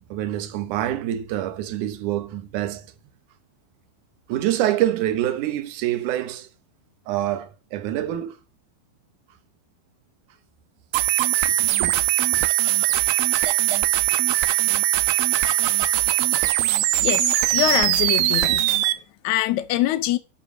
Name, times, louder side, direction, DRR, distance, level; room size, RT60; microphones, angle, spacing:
voice 1, 0.1-2.9 4.3-6.5 7.1-8.4 11.5-12.0 12.3-12.4 18.4-18.6, right 12 dB, 70° right, 2.2 m, -26 dB
sound 1, 10.9-18.9, right 14 dB, 85° right, 2.5 m, -21 dB
voice 2, 17.0-18.6 19.2-20.2, left 14 dB, 80° left, 1.7 m, -23 dB
10.0 x 5.0 x 6.2 m
omnidirectional pair, 4.2 m